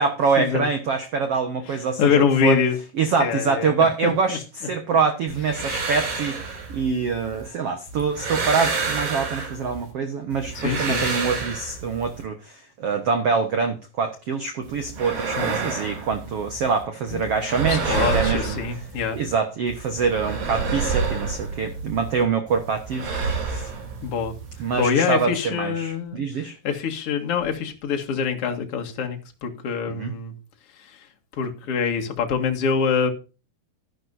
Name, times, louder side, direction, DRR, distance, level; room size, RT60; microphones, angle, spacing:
voice 1, 0.0-2.6 3.0-18.6 19.1-23.7 24.6-26.6 29.9-30.1, right 5 dB, 90° right, 6 dB, 1.3 m, -25 dB
voice 2, 1.7-2.8 3.2-4.4 10.5-11.1 15.4-15.6 17.1-17.2 17.7-19.2 24.0-24.4 24.8-30.3 30.8-31.1 31.3-33.1, left 6 dB, 45° left, 3 dB, 2.2 m, -25 dB
sound 1, 5.3-7.5 7.9-9.9 10.3-12.2 14.6-16.8 17.1-19.3 19.7-22.2 22.5-24.9, right 4 dB, 55° right, 4.6 m, -29 dB
13.0 x 11.5 x 2.7 m, 0.32 s
omnidirectional pair, 4.8 m